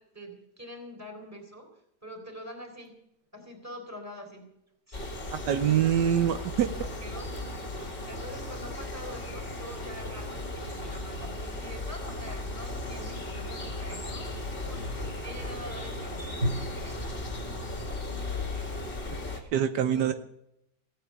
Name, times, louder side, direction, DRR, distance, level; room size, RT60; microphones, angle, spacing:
voice 1, 0.0-3.0 3.3-4.5 4.9-5.3 5.7-6.2 6.5-15.0 15.2-17.7 19.3-20.1, equal, 10° right, 2 dB, 3.8 m, -46 dB
sound 1, 2.8-2.9 6.4-16.5, equal, 55° right, 3.0 m, -43 dB
sound 2, 4.9-19.4, left 2 dB, 30° left, 2.3 m, -36 dB
voice 2, 5.3-6.7 19.5-20.1, right 9 dB, 80° right, 9 dB, 1.4 m, -25 dB
17.0 x 9.2 x 8.5 m, 0.79 s
omnidirectional pair, 1.9 m